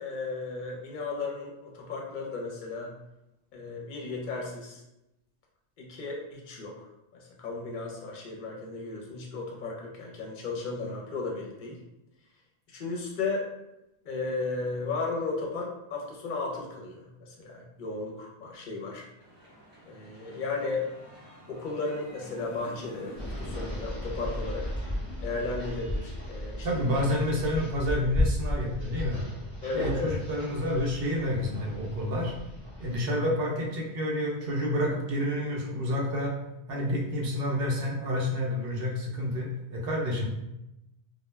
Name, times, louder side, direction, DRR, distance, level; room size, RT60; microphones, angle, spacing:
voice 1, 0.0-2.9 3.5-4.8 5.8-6.7 7.4-11.8 12.7-13.5 14.0-19.1 19.9-20.8 21.5-24.7 25.2-26.8 29.6-30.1, left 3 dB, 50° left, -1 dB, 0.7 m, -34 dB
sound 1, 19.2-25.8, equal, 25° right, 0.8 m, -48 dB
sound 2, 23.2-33.0, equal, 5° left, 0.9 m, -34 dB
voice 2, 26.6-29.2 29.7-32.3 32.8-36.4 36.7-40.3, left 1 dB, 65° right, -2 dB, 0.8 m, -29 dB
2.2 x 2.2 x 3.1 m, 0.89 s
omnidirectional pair, 1.1 m